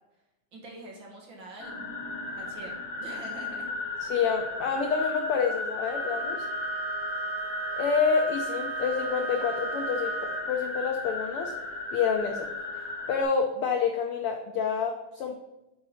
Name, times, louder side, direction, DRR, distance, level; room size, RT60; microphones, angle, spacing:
voice 1, 0.5-1.8 2.4-3.7, right 1 dB, 50° right, -1 dB, 1.9 m, -44 dB
sound 1, 1.6-13.2, left 2 dB, 60° left, 3.2 m, -35 dB
voice 2, 4.0-6.4 7.8-11.5 11.9-12.5 13.1-15.5, left 6 dB, 80° left, 4 dB, 1.2 m, -28 dB
Wind instrument woodwind instrument, 5.8-10.6, right 7 dB, 75° right, 1.4 m, -37 dB
8.5 x 5.0 x 5.7 m, 0.93 s
omnidirectional pair, 3.4 m